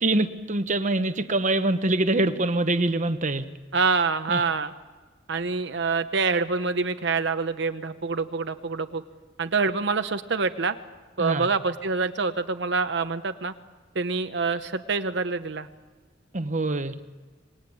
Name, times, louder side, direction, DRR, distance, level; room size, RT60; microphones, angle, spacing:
voice 1, 0.0-3.5 4.3-4.4 11.2-11.5 16.3-16.9, right 2 dB, 40° right, 9 dB, 1.1 m, -24 dB
voice 2, 3.7-4.7 5.3-9.0 9.4-10.7 11.2-13.5 13.9-15.7, right 4 dB, 70° right, 8 dB, 0.9 m, -26 dB
26.5 x 20.0 x 8.7 m, 1.3 s
head